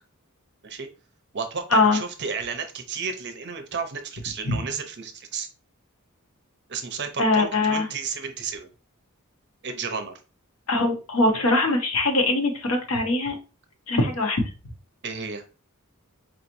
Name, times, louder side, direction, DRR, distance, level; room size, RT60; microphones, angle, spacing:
voice 1, 1.3-5.5 6.7-8.7 9.6-10.1 15.0-15.4, right 5 dB, 55° right, 6 dB, 0.7 m, -32 dB
voice 2, 7.2-7.8 10.7-13.3 13.9-14.4, left 2 dB, 75° left, 4 dB, 1.0 m, -22 dB
4.8 x 2.9 x 2.6 m, 0.33 s
head